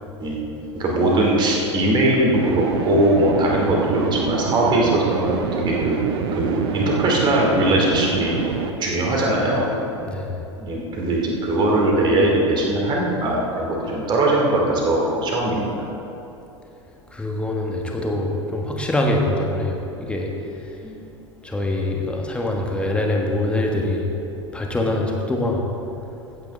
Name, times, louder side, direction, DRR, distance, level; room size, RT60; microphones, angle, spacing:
voice 1, 0.7-6.0 6.3-8.3 8.8-9.6 10.6-15.7 20.8-20.9, right 1 dB, 30° right, -2 dB, 2.5 m, -20 dB
sound 1, 2.3-8.7, right 6 dB, 55° right, 0.8 m, -26 dB
voice 2, 10.0-10.3 17.1-20.3 21.4-24.0 24.5-25.6, left 1 dB, 5° left, 0 dB, 1.4 m, -24 dB
15.5 x 8.8 x 3.5 m, 2.8 s
figure-of-eight pair, 80°, 16 cm